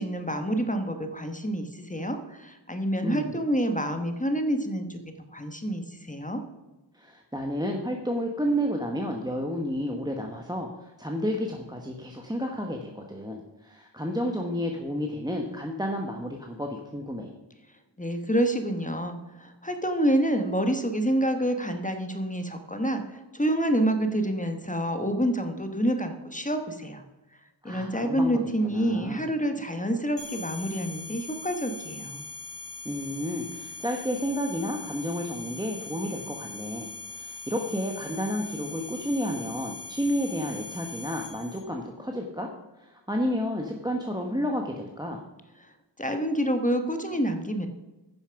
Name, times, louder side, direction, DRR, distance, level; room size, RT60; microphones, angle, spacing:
voice 1, 0.0-5.0 5.3-6.4 18.0-27.0 27.6-32.2 46.0-47.7, right 1 dB, 15° left, 6 dB, 1.2 m, -27 dB
voice 2, 3.0-3.4 6.9-17.3 27.6-29.3 32.8-42.5 42.8-45.2, equal, 10° right, 1 dB, 1.1 m, -31 dB
sound 1, 30.2-41.6, left 4 dB, 80° left, 3.8 m, -41 dB
10.0 x 7.0 x 5.8 m, 1.1 s
wide cardioid pair, 60°, 44 cm